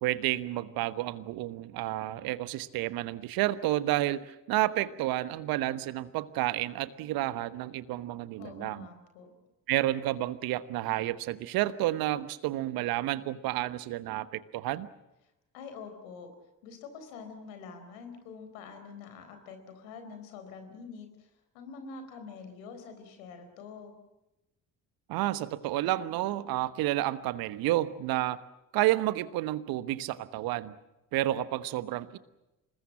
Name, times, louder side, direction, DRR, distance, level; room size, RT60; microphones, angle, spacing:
voice 1, 0.0-8.9 9.7-14.9 25.1-28.4 28.7-30.7 31.1-32.2, right 15 dB, 65° right, 15 dB, 1.2 m, -30 dB
voice 2, 8.4-9.3 15.5-16.3 16.6-21.3 21.5-23.9, left 5 dB, 75° left, 7 dB, 4.3 m, -46 dB
26.5 x 21.0 x 7.3 m, 0.95 s
hypercardioid pair, 50°, 39 cm